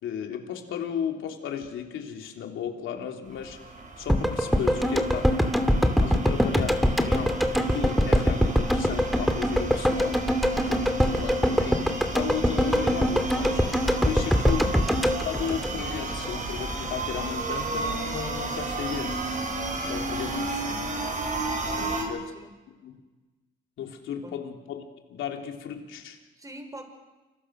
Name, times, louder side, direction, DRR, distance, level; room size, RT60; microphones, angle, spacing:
voice 1, 0.0-5.3 6.0-10.2 10.7-11.9 12.1-13.6 14.1-14.6 15.2-19.2 19.9-20.8 21.7-22.3 22.8-23.0 23.8-24.8 25.1-26.2, left 8 dB, 80° left, 3 dB, 3.5 m, -35 dB
sound 1, 3.3-22.0, right 3 dB, 40° right, 6.2 m, -33 dB
sound 2, 4.1-16.3 16.6-16.7, equal, ahead, 2.6 m, -23 dB
voice 2, 13.6-14.3 20.2-20.5 21.8-22.6 24.2-24.4 26.4-26.9, right 1 dB, 15° right, 6 dB, 5.5 m, -46 dB
29.0 x 26.0 x 6.6 m, 1.2 s
cardioid pair, 90°, 20 cm